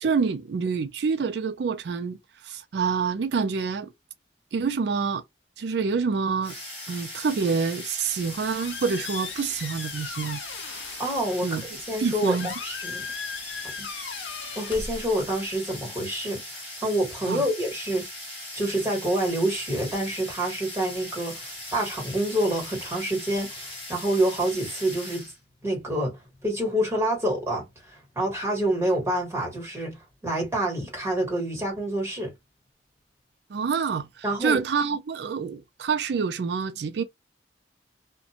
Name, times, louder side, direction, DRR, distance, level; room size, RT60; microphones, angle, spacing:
voice 1, 0.0-2.2 2.4-3.9 4.5-5.2 5.6-6.6 6.9-10.4 11.4-11.6 12.0-12.5 17.3-17.5 33.5-37.0, right 5 dB, 65° right, 0.4 m, -27 dB
sound 1, 6.4-25.4, left 1 dB, 30° left, 1.1 m, -39 dB
Squeak, 8.1-15.6, left 6 dB, 90° left, 0.5 m, -39 dB
voice 2, 11.0-13.0 13.8-13.9 14.5-18.0 18.5-25.3 25.6-30.0 30.2-32.3 34.2-34.6, right 1 dB, 15° right, 1.4 m, -27 dB
2.5 x 2.2 x 2.8 m
head